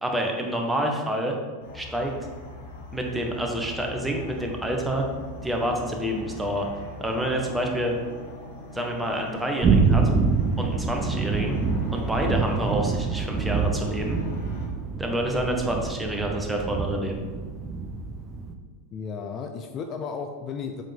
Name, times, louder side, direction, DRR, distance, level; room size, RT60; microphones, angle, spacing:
voice 1, 0.0-1.3 1.7-2.1 2.9-5.0 5.4-6.7 7.0-7.9 8.7-10.1 10.6-11.6 11.9-14.2 15.0-17.2, right 1 dB, 5° right, 1 dB, 1.4 m, -28 dB
sound 1, 1.6-14.7, left 2 dB, 65° left, 1.4 m, -42 dB
sound 2, 9.6-18.5, right 4 dB, 30° right, 0.7 m, -26 dB
voice 2, 18.9-20.8, left 5 dB, 40° left, 5 dB, 0.6 m, -34 dB
7.3 x 5.5 x 3.6 m, 1.5 s
hypercardioid pair, 90°, 0 cm